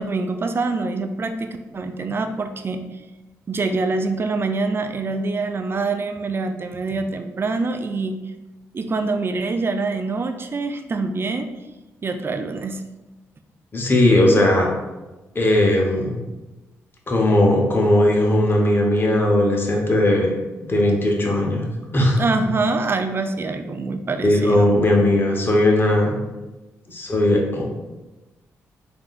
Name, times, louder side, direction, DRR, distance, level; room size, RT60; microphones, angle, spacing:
voice 1, 0.0-2.8 3.5-8.2 8.7-11.5 12.0-12.8 22.2-24.7, right 3 dB, 35° right, 8 dB, 0.3 m, -25 dB
voice 2, 13.7-14.7 15.3-16.2 17.1-20.3 20.7-21.7 21.9-22.2 24.2-26.1 26.9-27.6, left 1 dB, 35° left, 0 dB, 0.8 m, -18 dB
3.4 x 2.5 x 2.4 m, 1.1 s
supercardioid pair, 50°, 6 cm